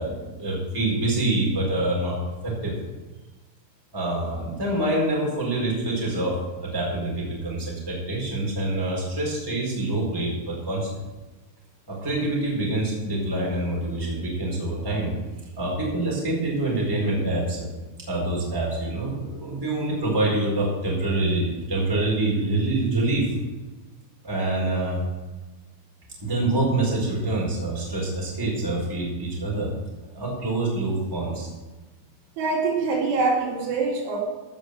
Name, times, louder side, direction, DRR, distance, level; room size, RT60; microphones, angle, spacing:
voice 1, 0.0-2.2 2.4-2.7 3.9-10.9 11.9-15.1 15.6-17.7 18.1-23.3 24.2-25.0 26.2-29.7 30.1-31.5, right 2 dB, 5° right, -4 dB, 3.8 m, -26 dB
voice 2, 32.4-34.2, right 4 dB, 75° right, -3 dB, 4.9 m, -24 dB
16.5 x 6.1 x 6.6 m, 1.2 s
omnidirectional pair, 5.7 m